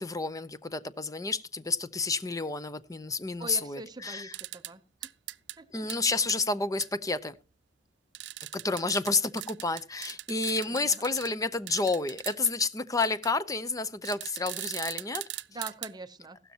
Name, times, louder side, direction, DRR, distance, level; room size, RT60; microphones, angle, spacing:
voice 1, 0.0-4.3 5.7-7.3 8.5-15.2, left 3 dB, 20° left, 0.7 m, -30 dB
voice 2, 3.4-5.1 5.6-5.9 10.7-11.0 15.5-16.4, right 2 dB, 25° right, 0.8 m, -43 dB
sound 1, 4.3-4.7 5.0-5.6 5.9-6.0 6.3-6.4 6.8-6.9 8.2-11.3 11.7-12.7 13.0-13.3 14.1-15.9, right 16 dB, 85° right, 0.5 m, -39 dB
15.5 x 12.5 x 2.9 m
head